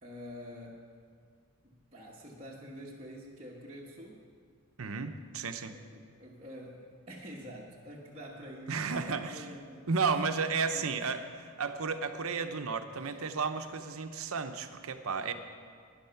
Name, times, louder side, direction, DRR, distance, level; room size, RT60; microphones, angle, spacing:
voice 1, 0.0-0.9 1.6-4.2 5.7-9.9 10.7-11.2 13.0-13.2 15.2-15.3, equal, 25° right, -6 dB, 1.2 m, -47 dB
voice 2, 4.8-5.7 8.7-9.5 9.9-11.2 11.6-15.3, right 5 dB, 70° right, 8 dB, 0.8 m, -33 dB
12.0 x 10.0 x 5.8 m, 2.2 s
head